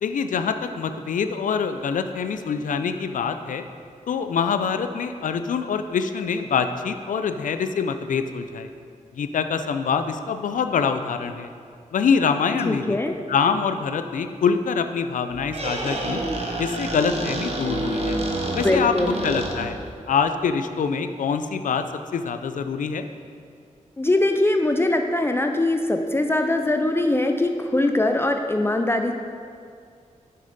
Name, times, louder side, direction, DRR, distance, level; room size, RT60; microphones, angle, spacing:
voice 1, 0.0-3.6 4.1-8.7 9.1-11.5 11.9-13.0 13.3-16.2 16.6-18.2 18.6-18.9 19.2-19.8 20.1-21.8 22.1-23.1, left 6 dB, 80° left, 9 dB, 0.4 m, -25 dB
voice 2, 12.7-13.1 18.5-19.2 24.0-29.1, left 2 dB, 20° left, 5 dB, 0.4 m, -22 dB
Squeak, 15.3-19.9, right 1 dB, 50° right, 0.9 m, -28 dB
6.7 x 6.5 x 4.0 m, 2.3 s
cardioid pair, 75°, 13 cm